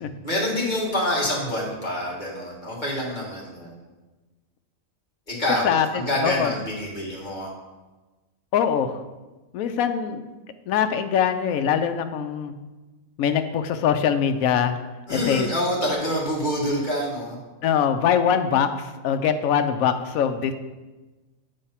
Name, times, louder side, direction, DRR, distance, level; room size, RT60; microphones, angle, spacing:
voice 1, 0.2-3.8 5.3-7.5 15.1-17.4, left 1 dB, 30° left, -4 dB, 1.7 m, -26 dB
voice 2, 5.6-6.5 8.5-9.0 9.5-10.2 10.7-12.5 13.2-14.8 15.1-15.5 17.6-20.5, left 8 dB, 75° left, 8 dB, 1.0 m, -23 dB
8.2 x 3.4 x 5.6 m, 1.2 s
omnidirectional pair, 1.5 m